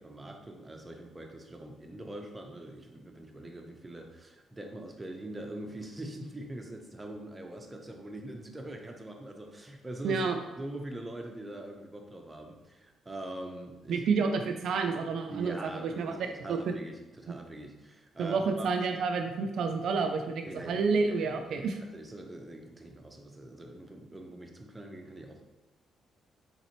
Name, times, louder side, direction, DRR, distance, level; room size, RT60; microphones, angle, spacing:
voice 1, 0.0-14.1 15.3-18.7 20.4-25.4, right 1 dB, 15° right, 2 dB, 0.6 m, -43 dB
voice 2, 10.0-10.3 13.9-16.2 16.5-16.7 18.2-21.8, right 4 dB, 70° right, 5 dB, 0.3 m, -29 dB
4.1 x 3.2 x 3.0 m, 1.1 s
cardioid pair, 90°, 0 cm